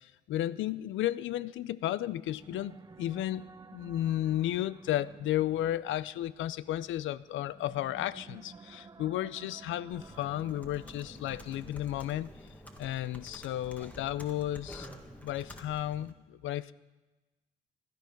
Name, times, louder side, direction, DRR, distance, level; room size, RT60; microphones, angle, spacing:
voice 1, 0.0-3.5 3.7-12.3 12.8-14.9 15.2-16.7, left 13 dB, 75° left, 18 dB, 0.5 m, -33 dB
sound 1, 2.2-12.0, right 4 dB, 20° right, 0.4 m, -53 dB
Computer keyboard, 9.9-16.1, equal, 5° left, 1.6 m, -49 dB
16.5 x 12.0 x 5.3 m, 1.2 s
cardioid pair, 90°, 20 cm